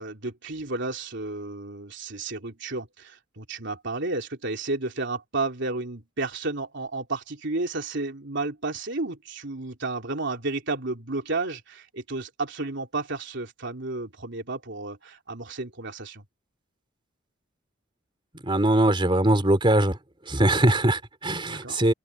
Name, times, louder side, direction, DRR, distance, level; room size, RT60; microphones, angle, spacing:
voice 1, 0.0-16.2 21.4-21.8, right 3 dB, 60° right, 3.4 m, -32 dB
voice 2, 18.4-20.0 20.3-21.9, right 1 dB, 25° right, 3.2 m, -21 dB
open air
head